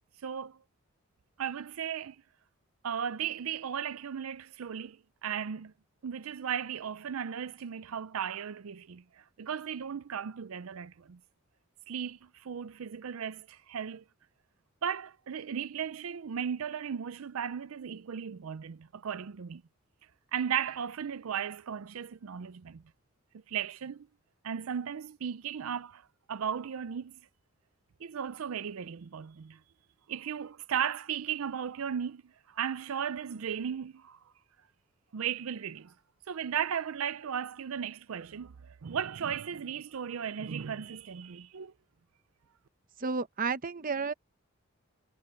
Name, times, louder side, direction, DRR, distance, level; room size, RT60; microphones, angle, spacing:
voice 1, 0.2-0.6 1.4-2.2 2.8-5.7 6.0-11.2 11.9-14.0 14.8-19.6 20.3-22.8 23.3-24.1 24.4-26.0 26.3-27.2 28.0-29.6 30.1-34.2 35.1-35.9 36.3-41.7, right 8 dB, 85° right, 0.5 m, -36 dB
voice 2, 43.0-44.1, right 4 dB, 40° right, 0.8 m, -31 dB
head